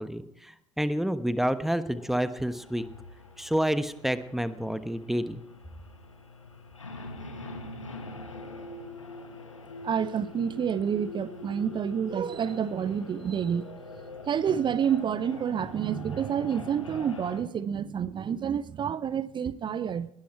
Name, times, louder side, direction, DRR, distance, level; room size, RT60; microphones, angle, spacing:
voice 1, 0.0-2.8 3.4-5.4, equal, ahead, 1.2 m, -29 dB
sound 1, 1.9-17.4, left 2 dB, 85° left, 1.6 m, -44 dB
voice 2, 9.8-13.7 14.3-20.1, right 8 dB, 30° right, 0.6 m, -29 dB
20.5 x 12.5 x 4.7 m
figure-of-eight pair, 65°, 16 cm